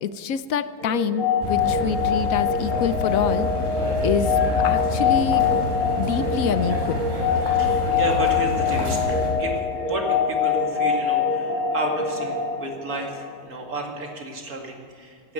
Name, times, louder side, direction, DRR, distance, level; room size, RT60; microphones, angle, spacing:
voice 1, 0.0-3.5 4.0-4.3 4.6-5.5 6.0-7.1, left 8 dB, 70° left, 13 dB, 1.1 m, -26 dB
sound 1, 0.8-13.6, left 6 dB, 45° left, 2.8 m, -24 dB
sound 2, 1.4-9.3, equal, 35° right, 4.4 m, -28 dB
voice 2, 7.5-9.0 9.4-15.3, right 2 dB, 85° right, 1 dB, 2.8 m, -32 dB
16.5 x 16.0 x 4.5 m, 2.2 s
omnidirectional pair, 1.5 m